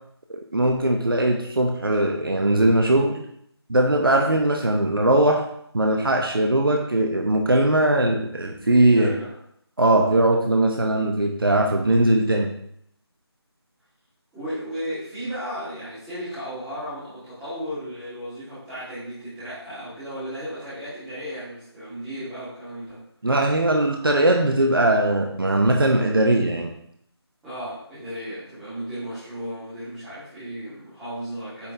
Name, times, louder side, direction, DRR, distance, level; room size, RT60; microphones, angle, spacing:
voice 1, 0.3-3.2 3.7-5.4 5.7-9.1 9.8-12.5 23.2-26.7, right 1 dB, 55° right, 2 dB, 1.1 m, -20 dB
voice 2, 8.9-9.3 14.3-23.0 27.4-31.7, equal, 5° right, -13 dB, 2.2 m, -34 dB
8.7 x 4.3 x 4.0 m, 0.70 s
figure-of-eight pair, 165°, 14 cm